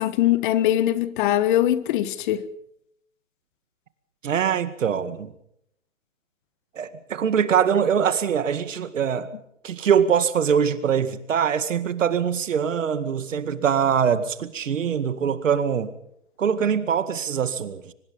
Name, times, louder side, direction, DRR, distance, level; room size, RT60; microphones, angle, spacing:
voice 1, 0.0-2.5, left 13 dB, 40° left, 1.4 m, -21 dB
voice 2, 4.2-5.3 6.8-9.3 9.6-15.9 16.4-17.9, right 7 dB, 70° right, 2.1 m, -23 dB
24.0 x 20.5 x 5.4 m
hypercardioid pair, 135°, 39 cm